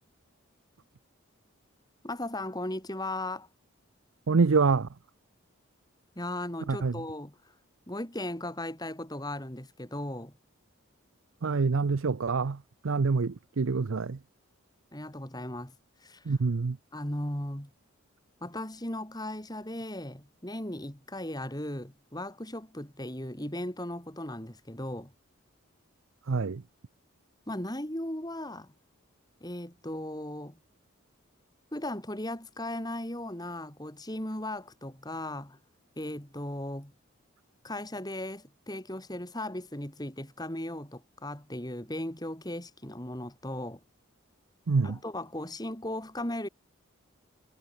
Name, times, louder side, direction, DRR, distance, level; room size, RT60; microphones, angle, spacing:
voice 1, 2.0-3.5 6.2-7.4 7.9-10.3 14.9-15.8 16.0-16.4 16.9-17.7 18.4-25.1 27.5-28.7 29.4-30.6 31.7-35.6 36.0-36.9 37.6-43.8 44.8-46.5, left 1 dB, 20° left, 3.9 m, -37 dB
voice 2, 4.3-4.9 6.7-6.9 11.4-12.6 12.8-14.2 16.3-16.8 26.3-26.6 44.7-45.0, right 4 dB, 75° right, 0.6 m, -26 dB
head